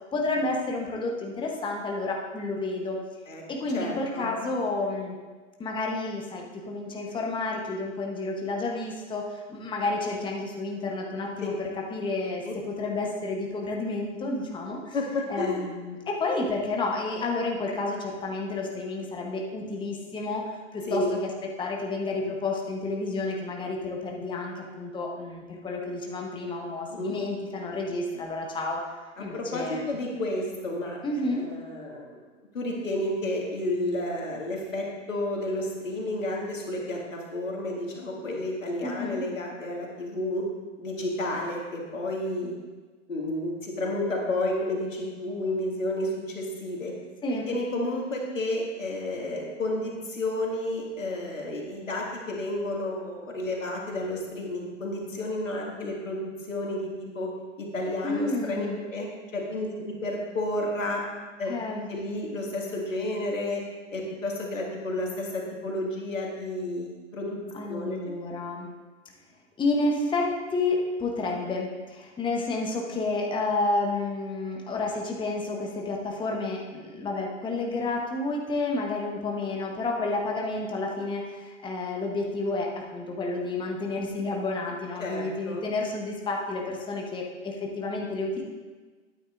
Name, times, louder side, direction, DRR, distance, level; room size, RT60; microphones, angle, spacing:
voice 1, 0.1-3.0 3.5-5.2 5.6-15.0 15.3-21.0 21.6-28.8 29.2-29.9 31.0-31.5 38.8-39.2 47.2-47.5 58.0-58.8 61.4-61.9 67.5-68.7 69.6-88.4, left 2 dB, 10° left, 0 dB, 1.1 m, -30 dB
voice 2, 3.7-4.3 12.4-12.5 14.9-15.7 20.9-21.2 26.9-27.2 29.2-32.2 32.5-40.5 40.8-42.5 43.1-46.9 47.3-57.3 57.6-59.1 59.3-61.0 61.4-61.5 61.9-63.6 63.9-66.9 67.1-68.2 85.0-85.6, left 1 dB, 90° left, -1 dB, 2.2 m, -31 dB
12.0 x 9.2 x 2.6 m, 1.3 s
hypercardioid pair, 110°, 38 cm